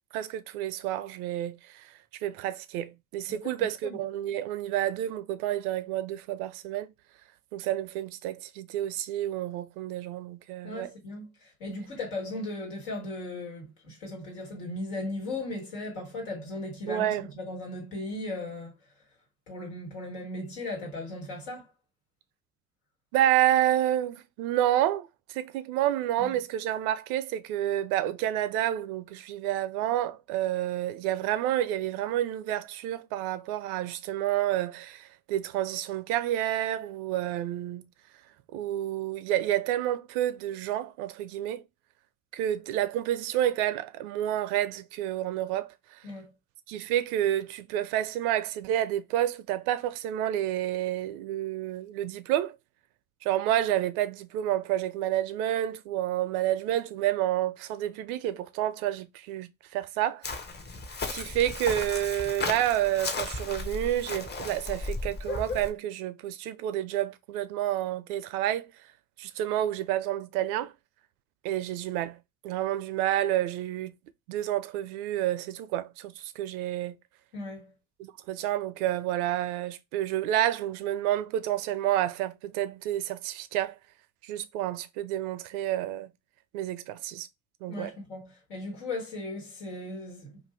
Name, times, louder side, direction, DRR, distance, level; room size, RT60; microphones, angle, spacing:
voice 1, 0.1-1.9 2.2-6.9 7.5-10.9 16.9-17.2 23.1-37.9 38.5-41.6 42.3-45.7 46.7-52.6 53.2-60.3 61.1-68.7 69.2-70.7 71.4-72.2 72.4-73.9 74.3-77.0 78.0-83.8 84.2-86.1 86.5-87.3 87.6-88.0, right 12 dB, 75° right, 0.5 m, -29 dB
voice 2, 3.3-4.0 10.6-18.7 19.5-21.7 26.2-26.4 46.0-46.3 77.3-77.7 87.7-90.4, left 2 dB, 80° left, 1.4 m, -37 dB
Chirp tweet, 60.2-65.7, left 3 dB, 25° left, 0.7 m, -35 dB
2.5 x 2.4 x 3.2 m
hypercardioid pair, 50°, 45 cm